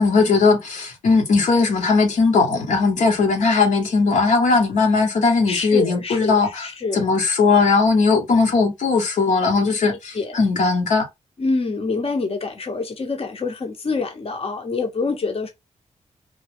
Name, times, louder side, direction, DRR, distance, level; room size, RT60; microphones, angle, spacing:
voice 1, 0.0-6.7 6.9-11.1, left 4 dB, 80° left, 1.0 m, -18 dB
voice 2, 5.5-7.0 10.1-10.4 11.4-15.5, left 3 dB, 50° left, 0.9 m, -26 dB
3.2 x 2.3 x 3.2 m
cardioid pair, 50°, 13 cm